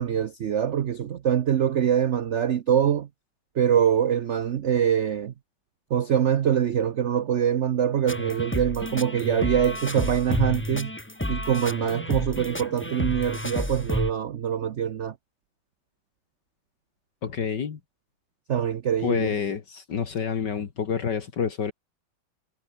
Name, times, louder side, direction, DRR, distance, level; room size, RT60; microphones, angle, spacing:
voice 1, 0.0-3.1 3.6-5.3 5.9-10.9 11.3-15.1 18.5-19.3, right 9 dB, 70° right, 0.6 m, -24 dB
sound 1, 8.1-14.1, left 1 dB, 5° left, 1.8 m, -30 dB
voice 2, 17.2-17.8 19.0-21.7, left 6 dB, 60° left, 2.3 m, -28 dB
omnidirectional pair, 2.1 m